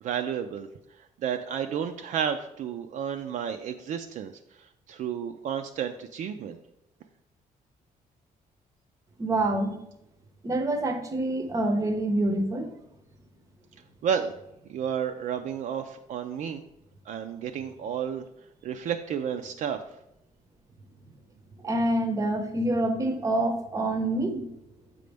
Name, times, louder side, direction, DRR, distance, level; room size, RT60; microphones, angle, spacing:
voice 1, 0.0-4.3 4.9-6.6 14.0-14.3 14.7-16.6 17.1-18.2 18.6-19.8, right 8 dB, 60° right, 6 dB, 0.4 m, -31 dB
voice 2, 9.2-9.8 10.4-12.7 21.6-24.5, right 1 dB, 20° right, 7 dB, 0.7 m, -26 dB
7.6 x 5.2 x 3.4 m, 0.84 s
cardioid pair, 170°, 15 cm